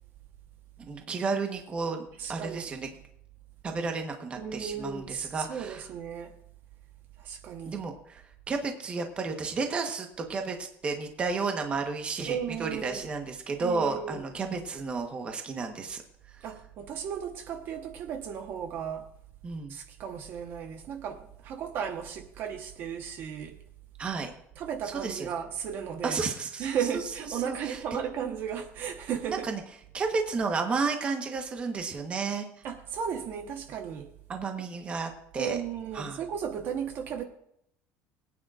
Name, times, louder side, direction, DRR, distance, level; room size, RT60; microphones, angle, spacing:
voice 1, 0.8-2.9 3.6-5.8 7.7-16.0 16.3-16.4 19.4-19.7 24.0-24.3 24.8-25.3 26.0-27.8 29.3-29.6 29.9-32.5 34.3-35.6 35.9-36.2, right 4 dB, 25° right, 1.2 m, -32 dB
voice 2, 2.2-2.7 4.4-6.3 7.2-7.8 12.3-13.0 13.6-14.2 16.4-19.1 19.7-23.6 24.6-26.2 26.6-29.5 32.6-34.1 35.4-37.2, right 8 dB, 45° right, 1.1 m, -35 dB
22.0 x 9.1 x 2.5 m
cardioid pair, 165°, 5 cm